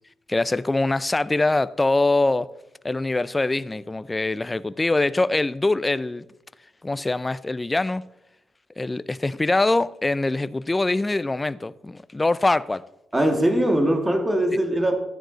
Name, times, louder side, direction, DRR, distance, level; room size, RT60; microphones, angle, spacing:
voice 1, 0.3-2.5 2.8-6.2 6.8-8.1 8.8-12.8, left 2 dB, 20° left, 0.4 m, -23 dB
voice 2, 13.1-15.0, right 1 dB, 15° right, 1.8 m, -21 dB
13.0 x 9.2 x 4.0 m
cardioid pair, 80°, 0 cm